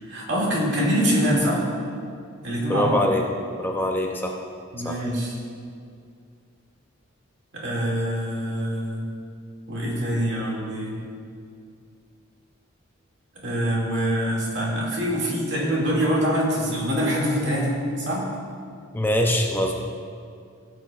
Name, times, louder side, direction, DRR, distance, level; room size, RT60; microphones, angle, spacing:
voice 1, 0.0-1.7 2.4-3.0 4.7-5.4 7.5-9.1 9.7-11.0 13.4-18.3, equal, 60° right, -4 dB, 2.2 m, -24 dB
voice 2, 2.7-3.2 3.6-4.4 4.8-5.0 18.9-19.8, left 1 dB, 10° left, 1 dB, 0.5 m, -23 dB
15.0 x 8.1 x 2.4 m, 2.3 s
head